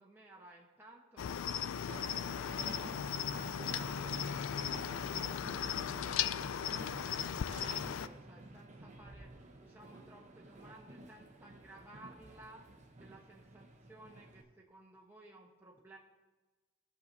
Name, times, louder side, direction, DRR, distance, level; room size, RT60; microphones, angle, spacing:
voice 1, 0.0-16.0, right 2 dB, 10° right, -3 dB, 1.0 m, -58 dB
Cricket, 1.2-8.1, left 8 dB, 65° left, 0.3 m, -37 dB
Train, 1.9-14.4, right 2 dB, 35° right, 0.8 m, -51 dB
18.0 x 6.7 x 2.7 m, 1.3 s
head